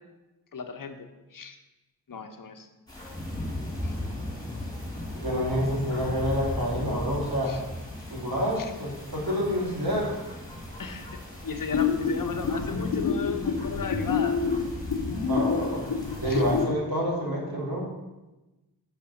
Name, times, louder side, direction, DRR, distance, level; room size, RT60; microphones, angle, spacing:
voice 1, 0.5-1.6 2.1-2.7 3.8-4.0 7.5-7.6 8.6-8.7 10.8-11.1 11.4-14.4 16.3-16.4, left 5 dB, 55° left, 5 dB, 1.0 m, -35 dB
sound 1, 2.9-16.6, left 1 dB, 10° left, 3.0 m, -38 dB
voice 2, 5.1-7.5 8.1-10.1 15.3-15.8 16.2-17.8, equal, 65° right, -4 dB, 3.2 m, -28 dB
sound 2, 11.7-16.8, left 5 dB, 80° left, 1.0 m, -28 dB
6.2 x 6.1 x 7.0 m, 1.1 s
wide cardioid pair, 70°, 39 cm